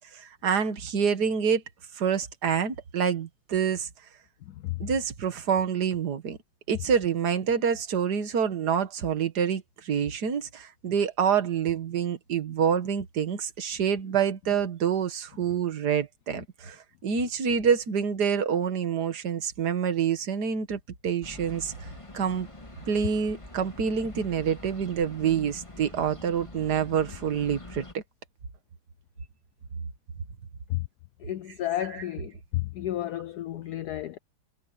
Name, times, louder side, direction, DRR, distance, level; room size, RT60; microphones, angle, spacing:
voice 1, 0.1-1.6 2.0-3.9 4.8-6.4 6.7-21.7 22.1-22.5 22.9-28.0 31.9-32.0, right 7 dB, 55° right, 2.1 m, -27 dB
sound 1, 21.2-27.9, left 2 dB, 15° left, 1.9 m, -45 dB
voice 2, 31.2-34.2, left 13 dB, 80° left, 0.8 m, -32 dB
omnidirectional pair, 2.2 m